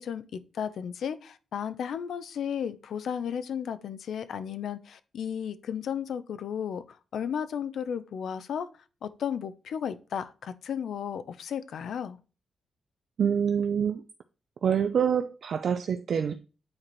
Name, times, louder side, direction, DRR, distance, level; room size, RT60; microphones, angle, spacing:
voice 1, 0.0-8.7 9.0-12.2, left 8 dB, 65° left, 0.6 m, -34 dB
voice 2, 13.2-14.0 14.6-16.4, right 7 dB, 50° right, 0.5 m, -26 dB
8.7 x 4.3 x 3.1 m
wide cardioid pair, 175°, 0 cm